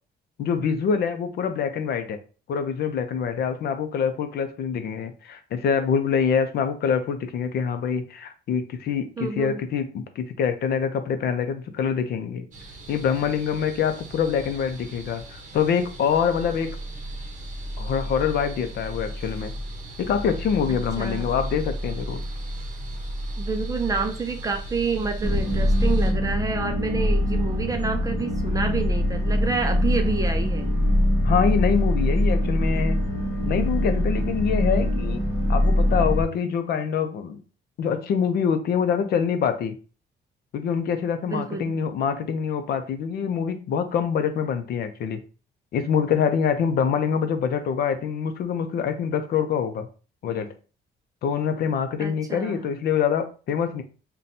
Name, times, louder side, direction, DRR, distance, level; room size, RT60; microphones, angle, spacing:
voice 1, 0.4-2.2 2.5-12.5 12.9-16.8 17.8-19.5 20.0-22.2 31.2-33.0 33.4-37.4 37.8-39.8 40.5-45.2 45.7-49.9 50.2-50.5 51.2-53.8, left 7 dB, 65° left, 0.5 m, -25 dB
voice 2, 9.2-9.6 20.7-21.3 23.4-30.7 41.3-41.8 52.0-52.6, right 4 dB, 20° right, 0.4 m, -28 dB
sound 1, 12.5-26.1, equal, 45° right, 0.7 m, -35 dB
sound 2, 25.2-36.2, left 1 dB, 5° left, 1.7 m, -23 dB
5.6 x 2.2 x 2.6 m
cardioid pair, 170°, 18 cm